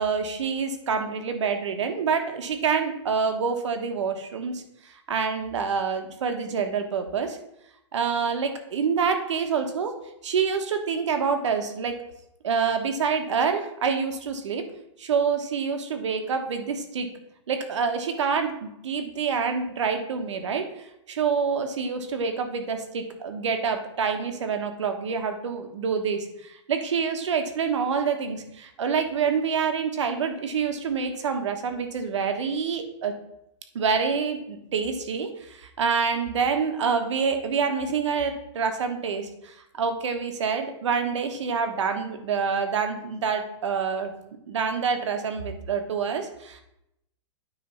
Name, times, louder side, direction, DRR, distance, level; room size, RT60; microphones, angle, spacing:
voice 1, 0.0-4.6 4.9-7.4 7.9-9.9 10.2-12.0 12.4-14.6 15.0-17.1 17.5-33.1 33.7-44.1 44.5-46.6, right 6 dB, 70° right, 6 dB, 1.3 m, -27 dB
9.3 x 3.4 x 5.6 m, 0.80 s
hypercardioid pair, 175°, 16 cm